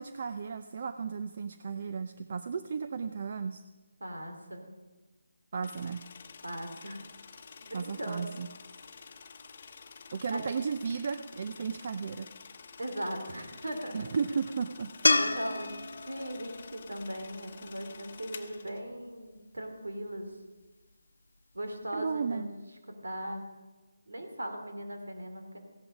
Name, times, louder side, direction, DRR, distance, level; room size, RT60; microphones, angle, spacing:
voice 1, 0.0-3.6 5.5-6.0 7.7-8.5 10.1-12.3 13.9-14.9 21.9-22.5, right 5 dB, 45° right, 9 dB, 0.5 m, -34 dB
voice 2, 4.0-4.7 6.4-7.0 7.6-8.3 10.1-10.5 12.8-14.0 15.1-20.3 21.5-22.6 22.9-23.4 24.1-25.6, right 1 dB, 85° right, 4 dB, 2.8 m, -39 dB
sound 1, 5.6-18.8, left 5 dB, 45° left, 0.9 m, -50 dB
sound 2, 15.0-18.3 21.5-21.6, left 3 dB, 80° left, 0.9 m, -30 dB
15.5 x 11.0 x 5.1 m, 1.2 s
figure-of-eight pair, 160°, 0 cm